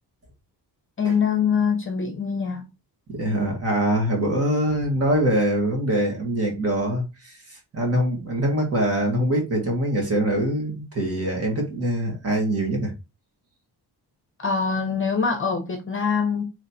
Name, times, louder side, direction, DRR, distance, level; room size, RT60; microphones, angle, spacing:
voice 1, 1.0-2.6 14.4-16.4, left 6 dB, 30° left, 0.8 m, -24 dB
voice 2, 3.2-12.9, right 1 dB, 35° right, 1.6 m, -23 dB
3.2 x 3.1 x 4.2 m
wide cardioid pair, 165°, 40 cm